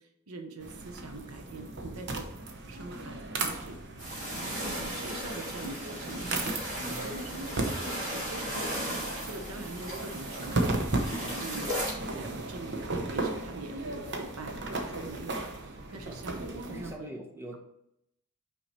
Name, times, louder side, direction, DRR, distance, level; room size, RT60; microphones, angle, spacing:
voice 1, 0.0-2.3 2.7-3.8 4.5-11.7 12.2-17.1, right 2 dB, 85° right, 6 dB, 0.9 m, -43 dB
sound 1, 0.6-16.9, right 2 dB, 55° right, 0.9 m, -36 dB
sound 2, 4.0-11.9, equal, 35° right, 2.4 m, -36 dB
voice 2, 6.7-7.1 12.1-12.3 15.9-16.2 16.7-17.6, right 1 dB, 10° right, 2 dB, 0.8 m, -44 dB
5.9 x 4.8 x 4.2 m, 0.80 s
head